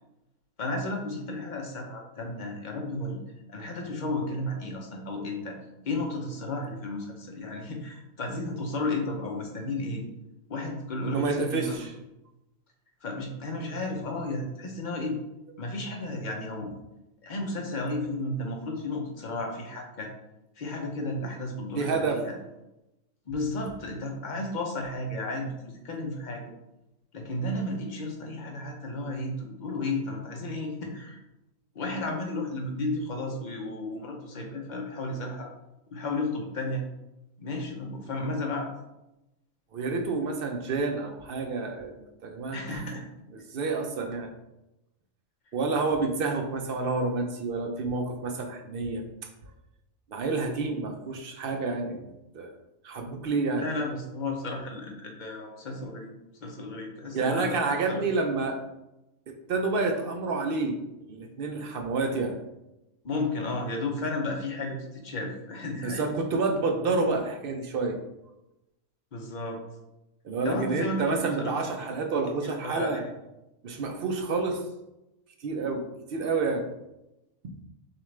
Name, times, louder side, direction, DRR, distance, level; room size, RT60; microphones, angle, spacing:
voice 1, 0.6-3.2 3.5-5.6 5.8-10.0 10.5-11.8 13.0-15.2 15.6-16.7 17.2-20.1 20.6-22.4 23.3-26.4 27.1-31.2 31.7-35.5 35.9-36.8 37.4-38.7 42.5-43.1 53.6-56.1 56.4-58.0 63.0-66.1 69.1-69.6 70.4-71.9 72.4-73.1, left 2 dB, 45° left, 1 dB, 0.7 m, -33 dB
voice 2, 11.1-11.9 21.7-22.2 39.7-42.8 43.3-44.3 45.5-49.0 50.1-52.5 52.8-53.6 57.1-58.6 59.3-60.8 61.1-62.3 65.8-68.0 70.2-73.0 73.6-74.6 75.4-76.6, right 3 dB, 55° right, 4 dB, 0.7 m, -29 dB
6.7 x 2.5 x 3.2 m, 0.94 s
omnidirectional pair, 1.4 m